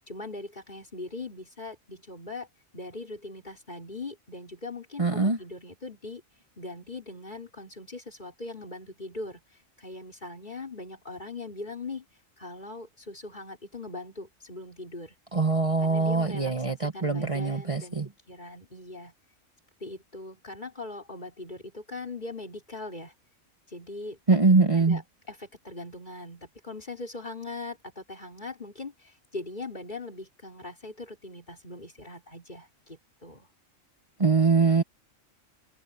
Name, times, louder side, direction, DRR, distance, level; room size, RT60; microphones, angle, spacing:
voice 1, 0.1-2.5 2.7-6.2 6.6-9.4 9.8-12.0 12.4-15.1 15.8-19.1 19.8-23.1 23.7-24.2 24.7-25.0 25.3-33.5, left 2 dB, 35° left, 4.6 m, -40 dB
voice 2, 5.0-5.4 15.3-18.1 24.3-25.0 34.2-34.8, right 4 dB, 25° right, 1.2 m, -23 dB
omnidirectional pair, 1.4 m